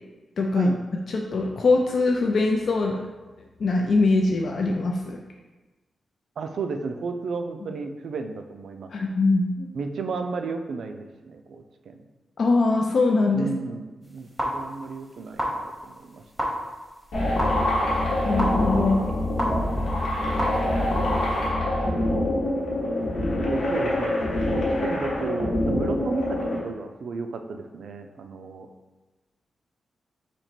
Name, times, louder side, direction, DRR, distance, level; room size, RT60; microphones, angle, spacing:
voice 1, 0.4-0.7 1.1-3.0 3.6-5.2 8.9-9.7 12.4-13.5 18.2-19.1, left 3 dB, 55° left, 0 dB, 0.4 m, -22 dB
voice 2, 6.4-8.9 9.7-11.9 13.3-14.3 14.5-16.5 23.4-28.7, right 4 dB, 80° right, 6 dB, 0.4 m, -33 dB
sound 1, 14.0-21.5, equal, 10° right, 0.9 m, -33 dB
sound 2, 17.1-26.6, left 1 dB, 85° left, 1.2 m, -25 dB
4.2 x 2.9 x 4.4 m, 1.2 s
wide cardioid pair, 160°, 0 cm